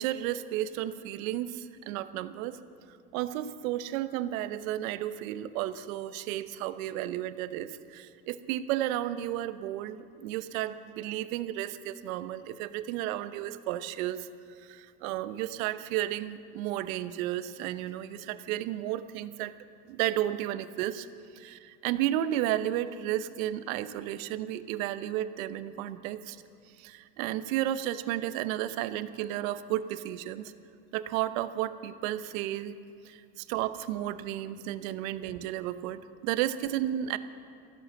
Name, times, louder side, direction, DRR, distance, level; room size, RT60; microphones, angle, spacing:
voice 1, 0.0-2.6 3.1-14.3 14.6-19.5 19.9-21.1 21.3-26.4 26.8-30.5 30.9-32.7 33.0-37.2, right 13 dB, 55° right, 13 dB, 0.9 m, -33 dB
14.0 x 12.0 x 7.6 m, 2.5 s
supercardioid pair, 140°, 49 cm